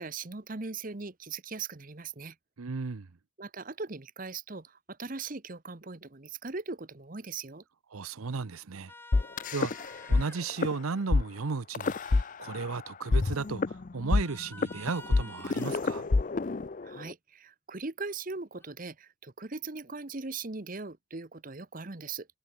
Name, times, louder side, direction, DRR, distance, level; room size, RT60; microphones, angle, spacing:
voice 1, 0.0-2.4 3.4-7.6 16.8-22.3, right 4 dB, 40° right, 1.0 m, -39 dB
voice 2, 2.6-3.1 7.9-8.9 9.5-16.1, right 4 dB, 90° right, 0.7 m, -35 dB
sound 1, 8.9-10.4 14.2-15.8 18.6-18.7, left 2 dB, 10° left, 1.4 m, -49 dB
sound 2, 9.1-10.2 10.5-10.7 11.1-11.2 11.7-12.8 13.1-17.1, left 3 dB, 40° left, 0.5 m, -27 dB
head